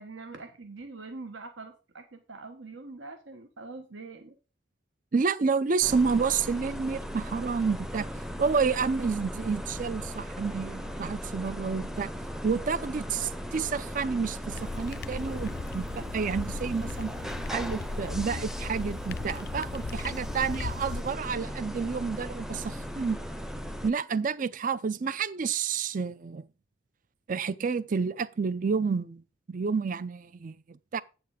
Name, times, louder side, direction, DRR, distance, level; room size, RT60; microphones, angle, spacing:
voice 1, 0.0-4.4, right 3 dB, 80° right, 1.2 m, -44 dB
voice 2, 5.1-8.1 8.4-12.1 12.4-17.1 17.5-23.2 23.8-26.5 27.3-29.2 29.5-31.0, right 5 dB, 45° right, 0.4 m, -29 dB
sound 1, 5.8-23.9, equal, ahead, 0.6 m, -37 dB
mayfield rain drips, 14.5-21.0, left 4 dB, 55° left, 0.4 m, -39 dB
8.4 x 7.1 x 4.8 m
head